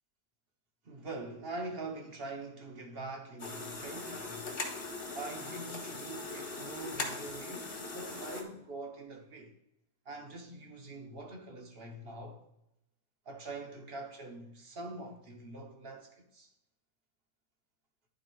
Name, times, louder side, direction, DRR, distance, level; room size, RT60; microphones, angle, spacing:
voice 1, 0.8-4.6 5.1-9.5 10.0-12.4 13.2-16.5, right 2 dB, 40° right, 1.3 m, -44 dB
sound 1, 3.4-8.4, left 3 dB, 40° left, 1.4 m, -40 dB
10.5 x 3.8 x 4.6 m
omnidirectional pair, 1.6 m